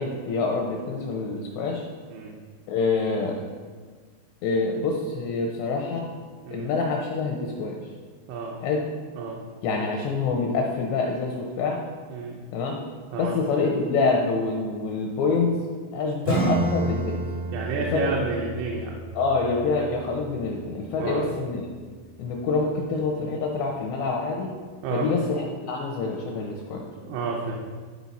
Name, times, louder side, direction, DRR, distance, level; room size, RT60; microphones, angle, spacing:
voice 1, 0.0-1.9 2.7-3.4 4.4-6.1 6.5-7.8 8.6-8.9 9.6-11.8 12.5-12.8 13.2-15.5 15.9-17.3 17.8-18.1 19.1-21.6 22.2-24.5 24.9-26.8, left 4 dB, 80° left, 1 dB, 2.5 m, -26 dB
Acoustic guitar / Strum, 16.2-21.5, right 2 dB, 70° right, 0.6 m, -30 dB
voice 2, 17.5-18.9 21.0-21.2 24.8-25.1 27.0-27.5, right 4 dB, 85° right, -1 dB, 3.4 m, -30 dB
13.0 x 4.3 x 4.1 m, 1.5 s
omnidirectional pair, 5.8 m